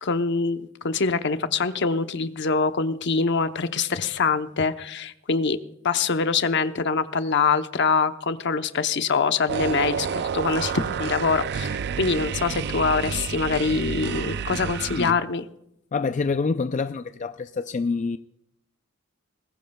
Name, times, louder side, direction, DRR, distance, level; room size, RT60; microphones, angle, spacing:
voice 1, 0.0-5.6 5.8-15.5, left 4 dB, 60° left, 0.8 m, -24 dB
sound 1, 9.5-15.1, right 7 dB, 55° right, 0.4 m, -29 dB
voice 2, 15.9-18.2, left 4 dB, 35° left, 0.4 m, -26 dB
20.5 x 16.0 x 2.3 m
head